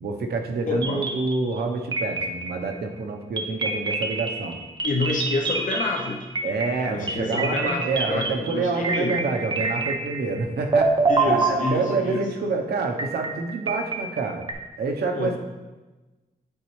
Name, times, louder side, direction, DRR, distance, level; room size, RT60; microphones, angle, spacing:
voice 1, 0.0-4.6 6.4-11.0 11.2-14.5 14.8-15.4, right 3 dB, 90° right, 2 dB, 0.8 m, -27 dB
voice 2, 0.7-1.0 4.8-6.3 6.9-9.2 11.1-12.2 15.1-15.4, left 3 dB, 55° left, 0 dB, 0.7 m, -28 dB
sound 1, 0.8-1.6 1.9-2.7 3.4-10.4 10.7-12.2 13.0-14.5, right 3 dB, 30° right, 0.6 m, -26 dB
8.8 x 4.2 x 3.2 m, 1.2 s
wide cardioid pair, 155°, 16 cm